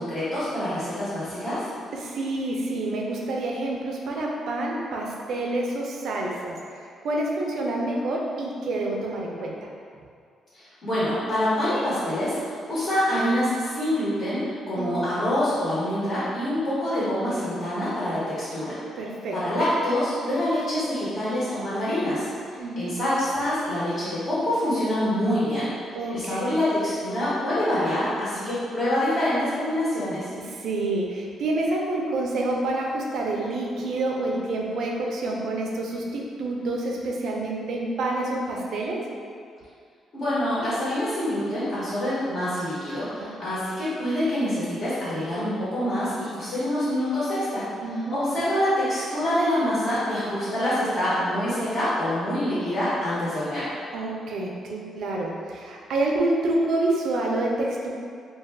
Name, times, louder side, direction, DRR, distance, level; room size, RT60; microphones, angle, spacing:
voice 1, 0.0-1.7 10.5-18.8 19.3-25.7 26.1-30.3 40.1-47.6 47.9-53.7, left 1 dB, 50° left, -11 dB, 1.1 m, -26 dB
voice 2, 1.9-9.7 14.8-14.9 19.0-19.4 22.6-23.0 25.9-26.5 30.4-39.1 43.2-43.6 47.8-48.2 53.9-57.9, right 2 dB, 70° right, -1 dB, 0.4 m, -28 dB
2.3 x 2.3 x 3.3 m, 2.3 s
cardioid pair, 90°, 0 cm